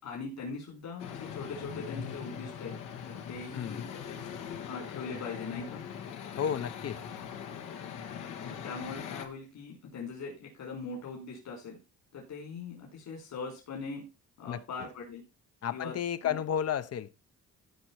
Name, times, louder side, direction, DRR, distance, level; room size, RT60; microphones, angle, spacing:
voice 1, 0.0-2.8 3.0-4.2 4.7-5.8 8.4-11.8 12.1-14.0 14.4-15.2 15.7-15.9 16.2-16.4, left 4 dB, 70° left, 4.8 m, -41 dB
sound 1, 1.0-9.3, left 8 dB, 90° left, 1.7 m, -41 dB
voice 2, 3.5-3.9 6.4-7.0 14.5-14.6 15.6-17.1, left 9 dB, 55° left, 0.8 m, -32 dB
15.5 x 5.3 x 4.6 m
cardioid pair, 90°, 30 cm